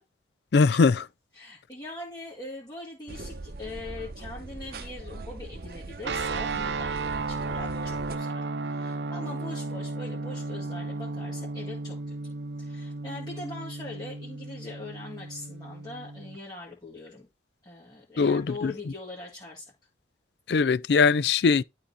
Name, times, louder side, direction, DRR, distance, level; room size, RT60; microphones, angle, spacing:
voice 1, 0.5-1.0 18.2-18.7 20.5-21.6, left 4 dB, 70° left, 0.4 m, -21 dB
voice 2, 1.3-12.3 12.6-17.3 17.6-19.7, left 2 dB, 25° left, 2.1 m, -42 dB
sound 1, 3.1-8.2, right 2 dB, 55° right, 0.9 m, -40 dB
sound 2, 6.0-16.4, right 3 dB, 80° right, 0.7 m, -34 dB
11.5 x 4.1 x 4.1 m
head